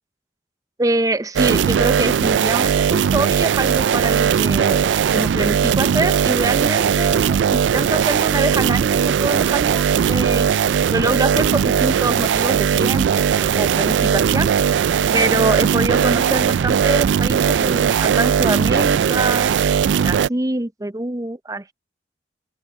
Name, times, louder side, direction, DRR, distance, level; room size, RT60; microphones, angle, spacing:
voice 1, 0.8-10.5 10.9-14.5 15.1-21.7, right 2 dB, 20° right, 0.5 m, -24 dB
sound 1, 1.4-20.3, right 7 dB, 90° right, 0.3 m, -18 dB
open air
head